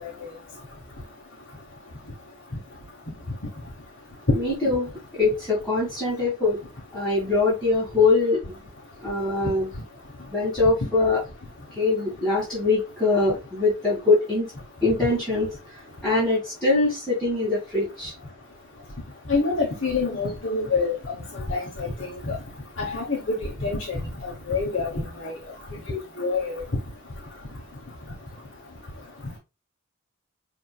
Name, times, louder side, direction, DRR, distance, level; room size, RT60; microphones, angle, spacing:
voice 1, 4.3-6.6 6.9-8.6 9.0-9.7 10.3-11.2 11.7-14.5 14.8-15.5 16.0-18.1, left 3 dB, 5° left, 2.9 m, -23 dB
voice 2, 19.3-21.0 21.3-22.4 22.8-25.3 25.9-26.6, left 4 dB, 60° left, 1.3 m, -27 dB
5.9 x 3.6 x 2.3 m
head